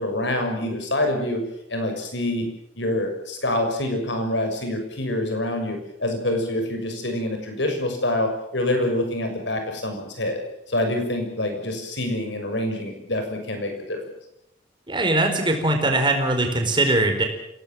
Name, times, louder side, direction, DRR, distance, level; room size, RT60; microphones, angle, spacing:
voice 1, 0.0-1.4 1.7-2.5 2.7-14.0, left 1 dB, 70° left, 5 dB, 6.5 m, -26 dB
voice 2, 14.9-17.2, right 2 dB, 25° right, 4 dB, 4.6 m, -21 dB
27.0 x 18.0 x 7.7 m, 0.81 s
head